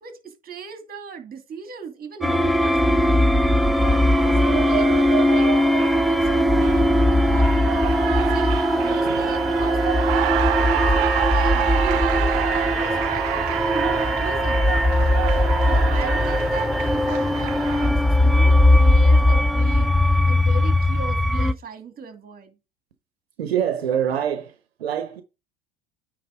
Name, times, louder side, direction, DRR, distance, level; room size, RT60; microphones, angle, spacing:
voice 1, 0.0-3.3 3.8-9.8 10.7-12.4 12.6-14.7 15.6-22.6, right 5 dB, 30° right, 2.4 m, -37 dB
sound 1, 2.2-21.5, left 1 dB, ahead, 0.4 m, -19 dB
Cheering, 2.7-17.9, right 20 dB, 55° right, 0.4 m, -28 dB
voice 2, 23.4-25.2, right 9 dB, 80° right, 0.9 m, -25 dB
9.3 x 3.2 x 5.2 m
figure-of-eight pair, 70°, 31 cm